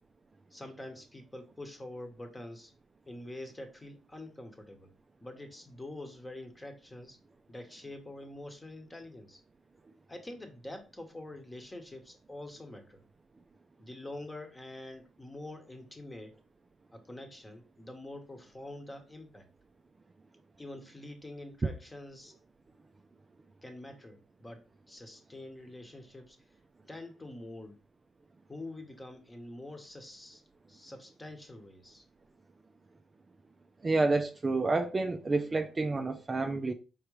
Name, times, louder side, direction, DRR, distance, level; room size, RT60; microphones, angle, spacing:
voice 1, 0.5-2.7 3.1-4.9 5.2-7.2 7.5-9.4 10.1-13.0 13.8-16.3 16.9-19.5 20.6-22.3 23.6-26.4 26.8-27.8 28.5-30.4 30.7-32.0, left 1 dB, 15° left, 1.1 m, -46 dB
voice 2, 33.8-36.7, right 3 dB, 25° right, 0.4 m, -29 dB
4.6 x 3.6 x 3.2 m
cardioid pair, 90°, 0 cm